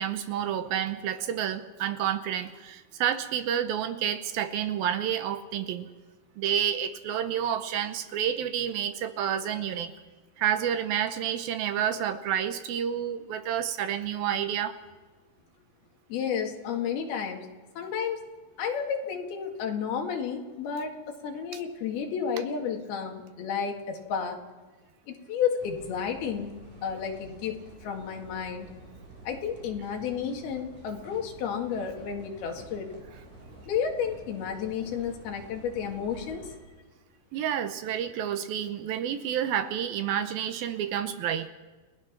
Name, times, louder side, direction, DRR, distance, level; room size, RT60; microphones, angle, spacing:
voice 1, 0.0-5.9 6.4-9.9 10.4-14.8 37.3-41.5, right 9 dB, 75° right, 10 dB, 2.6 m, -29 dB
voice 2, 16.1-17.5 17.8-18.2 18.6-24.4 25.1-26.5 26.8-28.7 29.2-32.9 33.7-36.6, left 7 dB, 75° left, 2 dB, 3.9 m, -32 dB
sound 1, 25.6-36.6, right 2 dB, 55° right, 8.6 m, -49 dB
30.0 x 18.5 x 6.0 m, 1.3 s
omnidirectional pair, 4.6 m